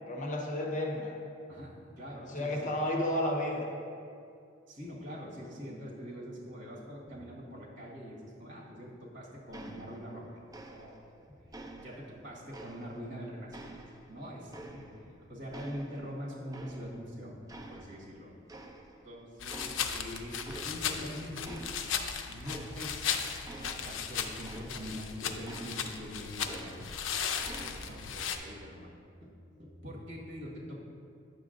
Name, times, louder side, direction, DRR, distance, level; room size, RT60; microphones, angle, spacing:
voice 1, 0.1-1.1 2.2-3.7, left 1 dB, 40° left, -1 dB, 0.9 m, -32 dB
voice 2, 1.5-2.7 4.7-10.4 10.7-13.7 14.1-17.4 17.7-18.3 19.0-21.6 22.2-23.2 23.6-26.7 27.2-28.9 29.2-29.3 29.6-30.8, equal, 65° right, -4 dB, 1.6 m, -44 dB
sound 1, 9.5-10.2 10.5-11.1 11.5-13.1 13.5-15.2 15.5-17.1 17.5-18.2 18.5-19.1 19.5-20.1 20.4-21.1 21.4-25.1 25.5-27.1 27.4-28.1, right 2 dB, 20° right, 0.4 m, -49 dB
sound 2, 19.4-28.4, left 7 dB, 70° left, 0.5 m, -36 dB
9.3 x 6.6 x 2.5 m, 2.4 s
head